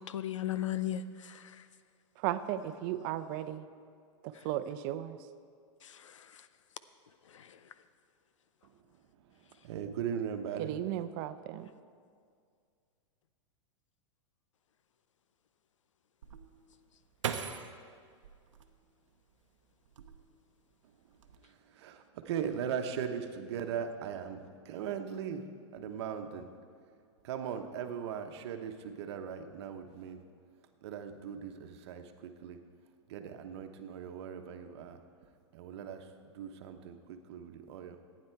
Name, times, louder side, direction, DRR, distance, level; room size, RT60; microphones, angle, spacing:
voice 1, 0.0-1.6 5.8-6.3 7.3-7.6, left 11 dB, 90° left, 14 dB, 0.6 m, -37 dB
voice 2, 2.2-3.7 4.2-5.2 10.6-11.7, right 12 dB, 45° right, 12 dB, 0.7 m, -35 dB
voice 3, 9.3-10.8 21.4-25.4 25.7-26.5 27.2-30.2 30.8-32.6 33.1-35.0 35.5-38.0, right 8 dB, 60° right, 6 dB, 1.1 m, -39 dB
sound 1, 16.2-19.3 19.8-20.6 20.9-21.4, right 7 dB, 90° right, 0.8 m, -41 dB
15.0 x 9.5 x 4.6 m, 2.2 s
hypercardioid pair, 130°, 16 cm